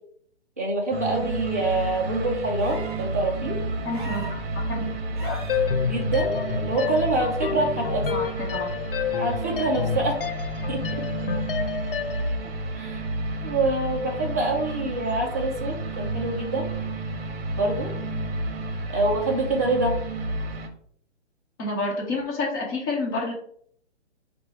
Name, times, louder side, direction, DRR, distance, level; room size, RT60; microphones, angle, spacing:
voice 1, 0.6-3.6 5.9-8.1 9.2-10.2 10.7-10.8 12.7-13.0 13.4-16.7 17.5-17.9 18.9-19.9, right 2 dB, 15° right, -4 dB, 0.4 m, -26 dB
sound 1, 0.9-20.7, right 2 dB, 60° right, 0.8 m, -31 dB
sound 2, 2.6-3.1 3.9-4.4 5.2-5.6 7.1-7.2, right 3 dB, 45° right, 1.2 m, -39 dB
voice 2, 3.8-4.2 4.5-4.8 5.2-5.4 8.1-8.7 21.6-23.3, left 2 dB, 20° left, -3 dB, 1.0 m, -29 dB
sound 3, 5.5-12.4, left 7 dB, 55° left, 0.4 m, -29 dB
4.9 x 2.2 x 4.2 m, 0.63 s
hypercardioid pair, 160°, 35 cm